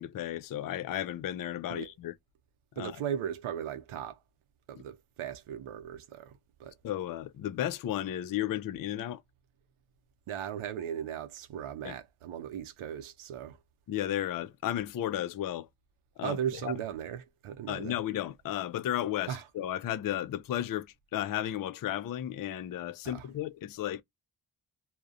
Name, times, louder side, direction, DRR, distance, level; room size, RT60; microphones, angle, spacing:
voice 1, 0.0-2.1 2.8-2.9 6.8-9.2 11.8-12.0 13.9-15.7 16.2-16.4 17.7-24.0, left 12 dB, 45° left, 0.4 m, -34 dB
voice 2, 2.8-4.2 4.7-6.3 6.6-6.8 10.3-13.6 16.2-18.0 19.3-19.5 23.0-23.3, right 9 dB, 75° right, 0.6 m, -37 dB
2.3 x 2.1 x 2.5 m
supercardioid pair, 45°, 50 cm